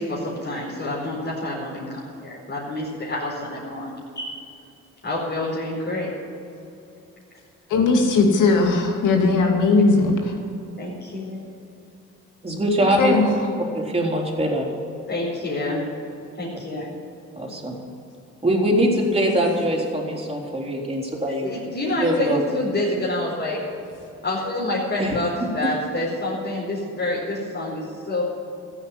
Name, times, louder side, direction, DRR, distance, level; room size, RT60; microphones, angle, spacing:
voice 1, 0.0-4.5 5.0-6.1 10.8-11.4 15.1-15.9 16.4-16.9 21.4-23.6 24.2-28.2, left 1 dB, 35° left, -7 dB, 4.7 m, -27 dB
voice 2, 7.7-10.3 13.0-13.3, left 3 dB, 80° left, 2 dB, 2.7 m, -18 dB
voice 3, 12.4-13.1 13.7-14.7 17.4-17.8 18.4-21.5 22.0-22.4 25.0-25.2, right 1 dB, 20° right, -2 dB, 3.8 m, -22 dB
14.5 x 9.1 x 9.1 m, 2.8 s
cardioid pair, 90°, 30 cm